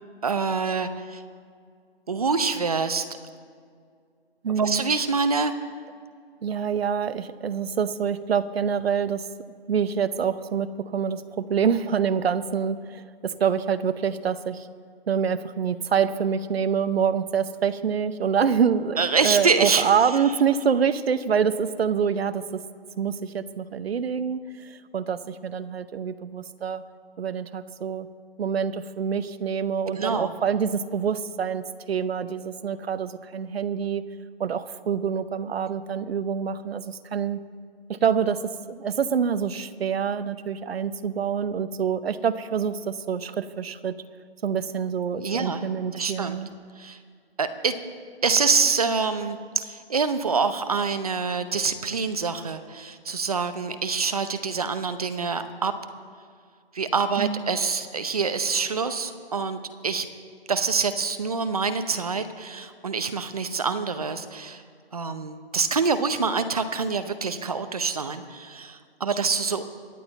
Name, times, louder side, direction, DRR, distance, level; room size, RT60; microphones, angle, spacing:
voice 1, 0.2-1.2 2.1-3.1 4.6-5.5 19.0-19.9 30.0-30.3 45.1-45.6 45.9-46.4 46.8-47.0 47.4-47.8 48.2-55.7 56.7-60.1 60.5-64.6 64.9-69.6, right 5 dB, 35° right, 10 dB, 0.7 m, -26 dB
voice 2, 4.4-4.8 6.4-9.2 9.7-14.7 15.1-22.6 23.0-26.8 27.2-28.1 28.4-34.0 34.4-37.4 37.9-38.4 38.7-44.0 44.4-46.5 57.2-57.5, right 7 dB, 75° right, 13 dB, 0.8 m, -26 dB
24.0 x 9.0 x 4.1 m, 2.1 s
hypercardioid pair, 180°, 31 cm